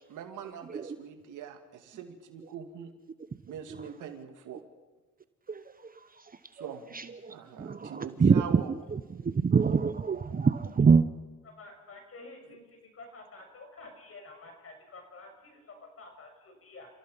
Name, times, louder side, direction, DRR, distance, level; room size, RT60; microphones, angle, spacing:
voice 1, 0.1-2.9 3.4-4.6 6.6-7.0 7.3-8.7 12.5-12.6, right 8 dB, 80° right, 6 dB, 2.5 m, -42 dB
voice 2, 5.5-5.9 6.2-6.3 6.6-6.7 6.9-8.6 9.2-11.1, right 5 dB, 30° right, 12 dB, 0.9 m, -25 dB
voice 3, 11.4-16.9, left 3 dB, 50° left, 4 dB, 6.4 m, -49 dB
30.0 x 15.5 x 5.7 m, 1.3 s
cardioid pair, 90°, 30 cm